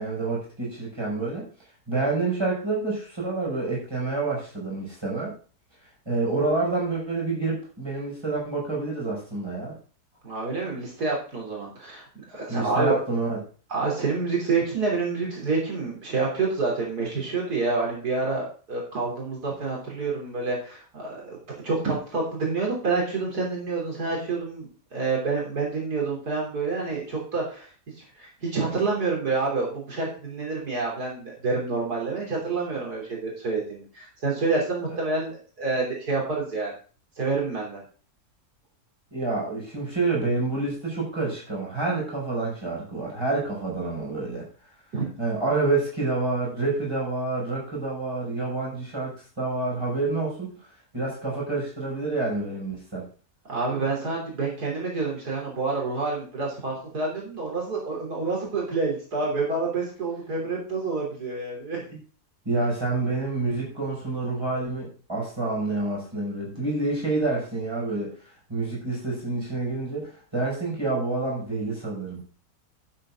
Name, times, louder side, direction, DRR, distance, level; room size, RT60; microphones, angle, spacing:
voice 1, 0.0-1.5 1.9-5.3 6.1-9.8 12.5-13.4 39.1-44.4 45.2-50.5 50.9-53.1 62.4-68.1 68.5-72.2, right 3 dB, 15° right, -4 dB, 5.8 m, -28 dB
voice 2, 10.2-13.0 13.7-27.7 28.2-36.7 37.2-37.8 44.9-45.1 53.5-61.9, right 4 dB, 80° right, -2 dB, 3.8 m, -28 dB
11.5 x 7.9 x 3.7 m, 0.39 s
omnidirectional pair, 1.7 m